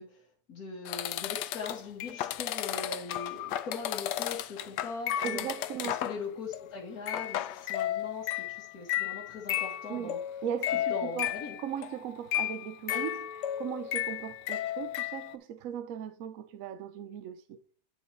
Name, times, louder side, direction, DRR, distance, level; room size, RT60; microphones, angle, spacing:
voice 1, 0.0-5.5 5.8-10.2 10.7-11.6, left 4 dB, 60° left, 1.8 m, -41 dB
sound 1, 0.9-6.2 6.5-6.8 7.1-15.3, left 12 dB, 90° left, 1.2 m, -34 dB
voice 2, 5.2-6.0 9.9-10.1 10.4-11.3 11.6-17.6, right 9 dB, 70° right, 0.8 m, -38 dB
9.3 x 3.9 x 4.2 m
omnidirectional pair, 1.8 m